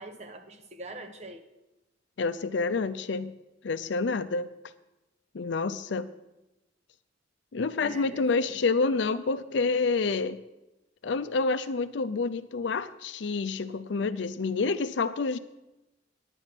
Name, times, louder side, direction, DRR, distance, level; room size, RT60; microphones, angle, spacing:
voice 1, 0.0-1.4 7.8-8.6, right 1 dB, 35° right, 7 dB, 1.0 m, -43 dB
voice 2, 2.2-3.3 3.6-4.5 5.3-6.1 7.5-10.4 11.0-15.4, left 4 dB, 70° left, 13 dB, 0.5 m, -28 dB
9.9 x 9.0 x 5.9 m, 0.97 s
head